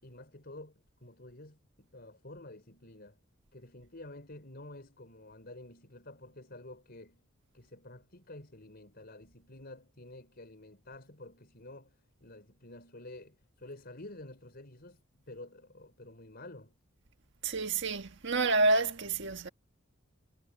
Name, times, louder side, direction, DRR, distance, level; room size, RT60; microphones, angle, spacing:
voice 1, 0.0-3.2 3.5-7.2 7.5-16.8, left 2 dB, 50° left, 4.9 m, -50 dB
voice 2, 17.4-19.5, right 2 dB, 60° right, 1.6 m, -28 dB
head